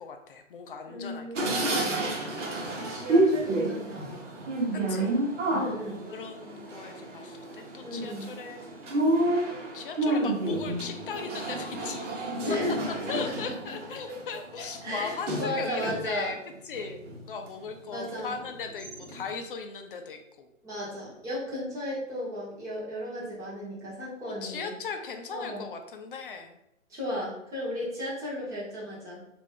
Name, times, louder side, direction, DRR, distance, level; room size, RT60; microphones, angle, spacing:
voice 1, 0.0-1.3 4.7-5.1 6.1-8.7 9.7-12.1 13.1-16.4 16.6-17.0 17.3-20.5 24.4-26.6, left 5 dB, 45° left, 6 dB, 0.5 m, -38 dB
voice 2, 0.8-2.0 2.4-4.2 4.7-5.1 5.5-6.0 7.8-8.3 12.4-13.7 14.1-14.2 14.8-15.1 15.4-16.3 17.9-18.4 20.6-24.7 25.3-25.7 26.9-29.3, left 1 dB, 10° right, -7 dB, 0.8 m, -35 dB
sound 1, 1.4-16.1 16.6-17.5 18.1-18.2 18.5-19.3, right 1 dB, 65° right, 1.0 m, -30 dB
3.2 x 2.6 x 3.5 m, 0.82 s
hypercardioid pair, 135°, 39 cm